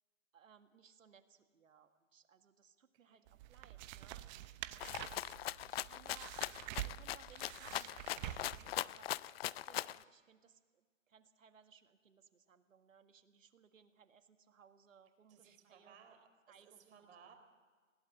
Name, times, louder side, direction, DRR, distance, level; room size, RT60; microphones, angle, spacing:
voice 1, 0.3-4.3 4.6-5.1 5.7-16.2 16.5-17.1, right 7 dB, 75° right, 8 dB, 1.9 m, -64 dB
voice 2, 2.9-3.3 15.3-16.2 16.5-17.3, right 7 dB, 55° right, 5 dB, 4.1 m, -61 dB
sound 1, 3.3-8.8, right 14 dB, 35° right, 0.9 m, -47 dB
Rattle (instrument), 4.8-10.0, left 13 dB, 50° left, 0.5 m, -41 dB
20.0 x 16.5 x 7.7 m, 1.5 s
hypercardioid pair, 125°, 39 cm